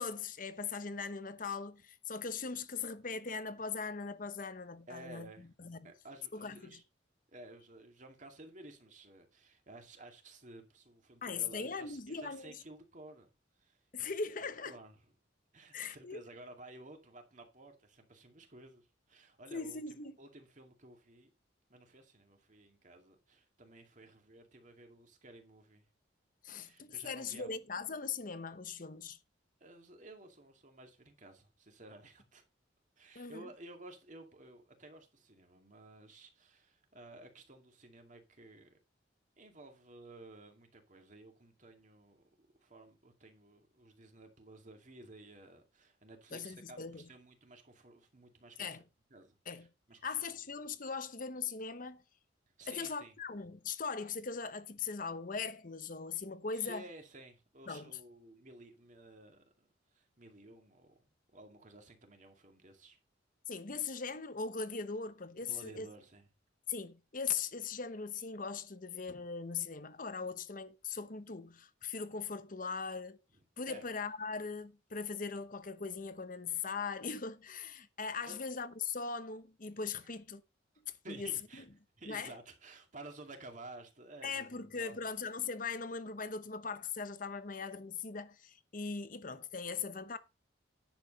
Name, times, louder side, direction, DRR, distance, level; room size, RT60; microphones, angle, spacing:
voice 1, 0.0-5.3 5.6-5.9 6.3-6.8 11.2-12.6 13.9-14.8 15.7-16.2 19.5-20.2 26.4-29.2 33.1-33.5 46.3-47.1 48.6-48.8 49.5-49.7 50.0-52.0 52.7-56.8 57.7-58.0 63.5-65.9 66.7-73.2 73.6-80.4 80.8-81.3 82.1-82.3 84.2-90.2, left 5 dB, 45° left, 0.9 m, -40 dB
voice 2, 4.9-5.5 5.8-6.8 7.3-13.3 13.6-14.1 14.7-14.9 15.5-21.3 21.7-25.9 26.5-27.5 29.6-32.4 33.0-38.8 39.4-48.8 49.1-50.0 52.6-53.1 56.5-61.0 61.3-63.0 65.5-66.3 73.7-73.9 78.2-78.4 81.0-81.7 82.0-85.0, right 2 dB, 40° right, 2.3 m, -54 dB
10.5 x 7.3 x 4.1 m
head